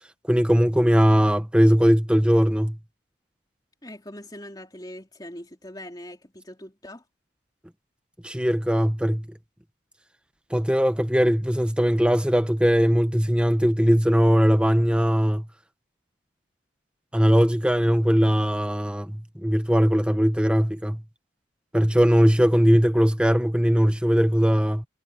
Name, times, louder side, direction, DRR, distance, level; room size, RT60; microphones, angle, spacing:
voice 1, 0.3-2.8 8.2-9.3 10.5-15.5 17.1-21.0 21.7-24.9, equal, 5° right, 1.0 m, -20 dB
voice 2, 3.8-7.0, left 1 dB, 20° left, 3.4 m, -41 dB
head